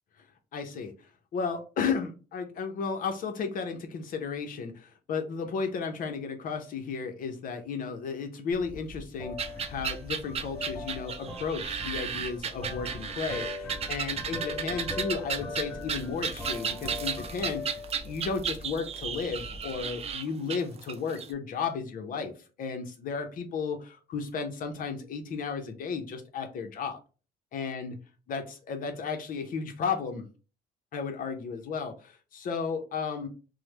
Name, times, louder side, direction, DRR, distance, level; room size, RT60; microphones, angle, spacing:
voice 1, 0.5-0.9 1.3-22.3 22.6-27.0 27.5-27.9 28.3-30.3 30.9-33.3, left 5 dB, 55° left, 5 dB, 0.6 m, -34 dB
sound 1, 8.5-20.1, left 2 dB, 15° left, 1.0 m, -40 dB
sound 2, 9.4-21.3, right 7 dB, 35° right, 0.4 m, -34 dB
3.1 x 2.0 x 3.1 m, 0.34 s
cardioid pair, 110°, 17 cm